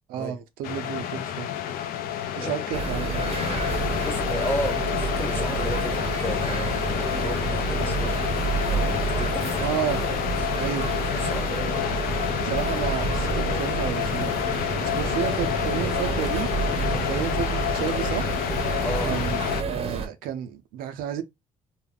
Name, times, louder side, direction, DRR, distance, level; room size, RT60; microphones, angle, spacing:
voice 1, 0.1-1.5 2.3-3.3 9.6-10.0 10.6-10.9 12.4-14.3 14.8-16.5 16.9-18.3 19.0-19.4 19.7-21.2, right 10 dB, 90° right, 0.4 m, -31 dB
sound 1, 0.6-19.6, left 10 dB, 80° left, 0.4 m, -28 dB
sound 2, 2.7-20.1, right 5 dB, 40° right, 0.6 m, -29 dB
voice 2, 3.9-8.2 8.6-9.6 10.2-10.5 11.2-11.5 16.8-17.0 18.8-19.1, equal, 15° left, 0.9 m, -34 dB
2.3 x 2.0 x 3.3 m
supercardioid pair, 70°, 15 cm